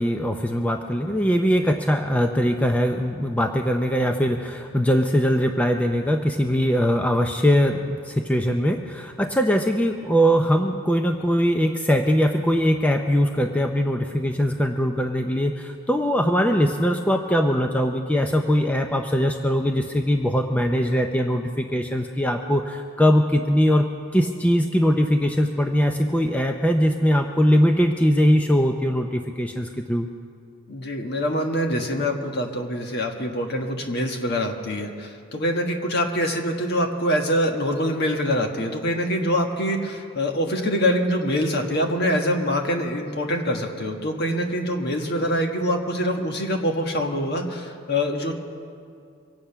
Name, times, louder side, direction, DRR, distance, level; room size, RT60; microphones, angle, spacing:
voice 1, 0.0-23.9 24.1-30.1, equal, 5° left, 4 dB, 0.5 m, -21 dB
voice 2, 30.7-48.3, equal, 50° left, 3 dB, 1.4 m, -24 dB
24.0 x 8.8 x 5.7 m, 2.4 s
head